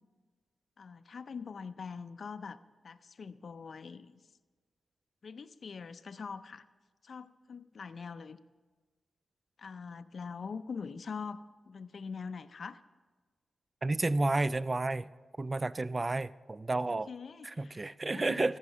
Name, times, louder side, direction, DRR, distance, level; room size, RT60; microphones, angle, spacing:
voice 1, 0.8-4.2 5.2-6.6 7.0-8.4 9.6-11.4 11.7-12.8 16.9-18.5, left 5 dB, 65° left, 0.4 m, -43 dB
voice 2, 13.8-15.1 15.4-17.1 17.4-18.6, right 2 dB, 35° right, 0.3 m, -31 dB
14.5 x 5.6 x 7.2 m
cardioid pair, 65°, 0 cm